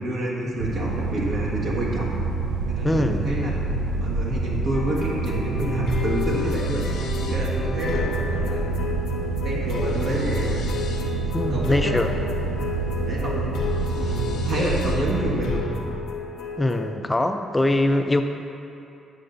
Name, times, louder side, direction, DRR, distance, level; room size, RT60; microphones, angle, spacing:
voice 1, 0.0-2.2 2.7-3.5 4.0-8.7 9.2-10.8 11.4-11.9 13.1-13.6 14.0-15.7, right 1 dB, 65° right, -5 dB, 1.6 m, -28 dB
sound 1, 0.6-15.4, right 3 dB, 85° right, 0.4 m, -27 dB
voice 2, 2.8-3.3 11.3-12.1 16.6-18.2, left 1 dB, 15° left, 6 dB, 0.4 m, -22 dB
sound 2, 4.7-16.9, left 4 dB, 85° left, 0.8 m, -31 dB
9.1 x 6.5 x 2.6 m, 2.8 s
cardioid pair, 90°, 0 cm